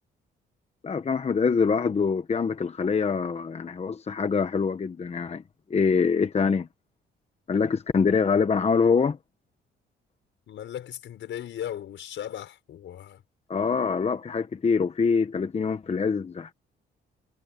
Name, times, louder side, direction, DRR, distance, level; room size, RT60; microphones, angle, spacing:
voice 1, 0.8-5.4 5.7-6.7 7.5-9.2 13.5-16.5, left 5 dB, 30° left, 1.1 m, -24 dB
voice 2, 10.5-13.2, left 10 dB, 70° left, 5.9 m, -37 dB
cardioid pair, 90°, 20 cm